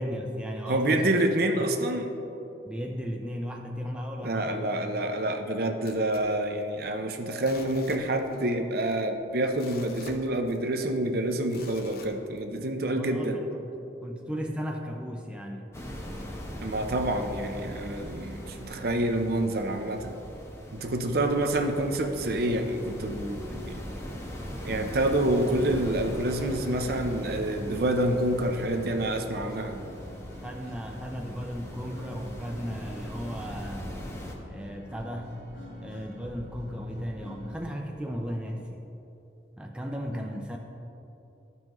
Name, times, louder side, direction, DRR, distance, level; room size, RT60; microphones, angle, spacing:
voice 1, 0.0-1.2 1.6-2.0 2.6-4.7 13.0-15.8 30.4-33.9 34.5-35.4 35.8-38.8 39.6-40.6, equal, 5° right, 1 dB, 0.4 m, -36 dB
voice 2, 0.7-2.1 4.2-13.4 16.6-20.2 20.7-23.9 24.6-29.8, right 1 dB, 55° right, 5 dB, 0.6 m, -27 dB
sound 1, 5.8-7.0 7.3-8.5 8.8-8.9 9.4-10.8 11.5-12.7 13.2-13.3, left 4 dB, 55° left, 0.7 m, -48 dB
sound 2, 15.7-34.3, equal, 15° left, 0.8 m, -40 dB
sound 3, 21.8-37.8, left 1 dB, 85° left, 1.5 m, -47 dB
13.0 x 5.4 x 3.1 m, 2.9 s
head